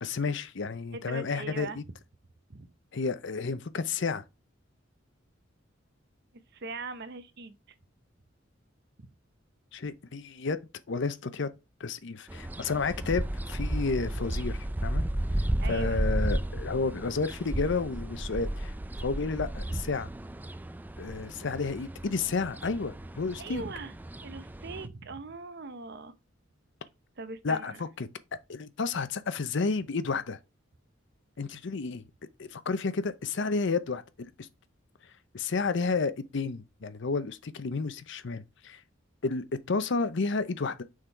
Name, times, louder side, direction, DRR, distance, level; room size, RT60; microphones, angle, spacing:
voice 1, 0.0-1.8 2.9-4.2 9.7-10.6 10.9-11.5 11.8-15.0 15.7-18.7 19.0-20.1 21.0-23.6 27.4-28.1 28.5-30.4 31.4-32.0 32.4-34.5 35.3-38.8 39.2-40.8, left 4 dB, 65° left, 0.6 m, -31 dB
voice 2, 0.9-1.8 2.5-2.7 6.5-7.6 9.0-9.1 15.6-16.0 23.4-23.9 24.2-26.1 27.2-27.8, right 3 dB, 55° right, 0.7 m, -40 dB
sound 1, 12.3-24.9, right 1 dB, 10° right, 0.3 m, -33 dB
6.3 x 3.8 x 4.4 m
head